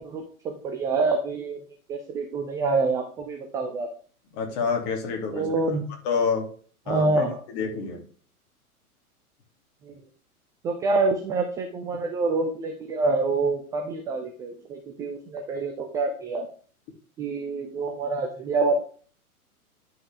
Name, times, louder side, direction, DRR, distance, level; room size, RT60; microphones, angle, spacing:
voice 1, 0.0-1.6 1.9-3.9 5.3-5.9 6.9-7.4 9.8-10.0 10.6-16.5 17.2-18.7, right 3 dB, 10° right, 3 dB, 0.4 m, -26 dB
voice 2, 4.3-5.5 6.0-6.5 6.9-7.2 7.5-8.0, left 5 dB, 35° left, 2 dB, 2.9 m, -27 dB
11.0 x 5.7 x 3.5 m, 0.43 s
figure-of-eight pair, 110°, 45 cm